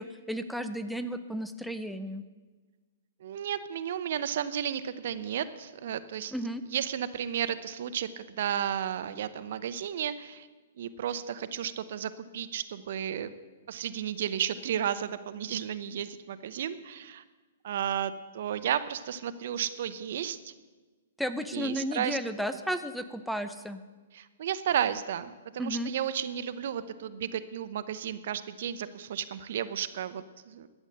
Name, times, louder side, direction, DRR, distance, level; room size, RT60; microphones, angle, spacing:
voice 1, 0.0-2.2 6.3-6.6 21.2-23.8 25.6-25.9, equal, ahead, 8 dB, 0.6 m, -33 dB
voice 2, 3.2-6.3 6.7-10.5 10.8-13.3 13.7-17.2 17.6-20.5 21.5-22.2 24.1-30.7, right 9 dB, 60° right, 13 dB, 0.7 m, -33 dB
12.5 x 8.3 x 7.5 m, 1.3 s
figure-of-eight pair, 120°, 0 cm